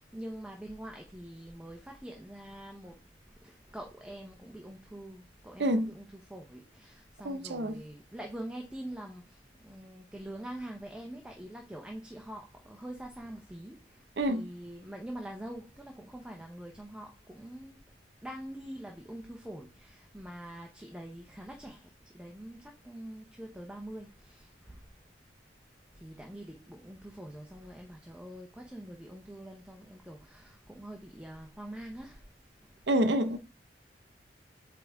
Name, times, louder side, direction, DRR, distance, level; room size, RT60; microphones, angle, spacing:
voice 1, 0.0-3.0 3.4-17.8 18.2-24.9 25.9-32.3 32.6-32.7, right 1 dB, 5° right, 0.8 m, -45 dB
voice 2, 5.6-5.9 7.2-7.8 14.2-14.5 32.9-33.4, right 1 dB, 70° right, 0.7 m, -27 dB
8.3 x 3.6 x 3.5 m
head